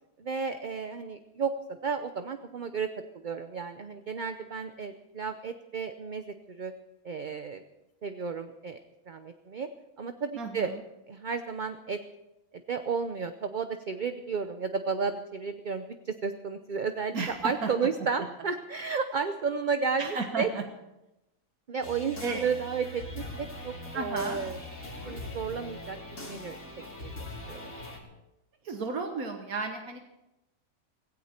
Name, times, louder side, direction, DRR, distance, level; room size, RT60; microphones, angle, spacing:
voice 1, 0.2-2.9 3.1-6.7 7.0-7.6 8.0-8.8 9.1-9.7 10.0-10.7 11.1-12.0 12.5-20.5 21.7-24.6 25.1-26.6 27.0-27.7, right 5 dB, 45° right, 8 dB, 0.7 m, -33 dB
voice 2, 10.4-10.8 17.1-17.7 20.0-20.6 22.2-22.4 23.9-24.4 28.6-30.0, right 4 dB, 75° right, 4 dB, 1.8 m, -33 dB
sound 1, 21.8-28.0, left 1 dB, 60° left, 3.2 m, -41 dB
17.0 x 17.0 x 4.4 m, 0.93 s
omnidirectional pair, 1.5 m